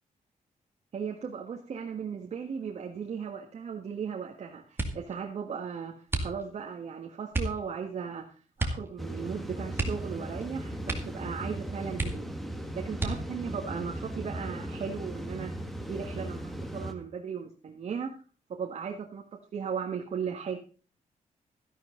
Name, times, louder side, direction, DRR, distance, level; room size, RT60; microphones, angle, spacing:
voice 1, 0.9-8.3 8.6-12.3 12.7-15.5 15.8-18.1 18.6-19.2 19.5-20.6, right 6 dB, 55° right, 1 dB, 1.7 m, -36 dB
sound 1, 4.7-5.2 6.1-6.7 7.3-7.6 8.6-8.9 9.2-9.3 9.7-10.5 10.8-11.3 11.6-11.7 11.9-12.5 12.9-13.5 14.2-14.8 15.2-15.6, right 2 dB, 15° right, 2.2 m, -33 dB
sound 2, 9.0-16.9, right 1 dB, ahead, 1.7 m, -38 dB
13.5 x 11.5 x 3.8 m, 0.36 s
wide cardioid pair, 155°, 13 cm